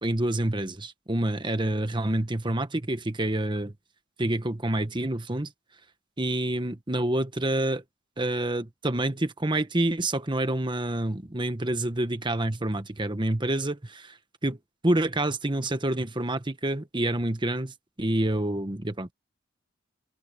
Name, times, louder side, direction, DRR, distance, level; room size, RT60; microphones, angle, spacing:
voice 1, 0.0-3.7 4.2-5.5 6.2-7.8 8.2-14.2 14.4-14.6 14.8-19.1, right 1 dB, 25° right, 1.3 m, -27 dB
head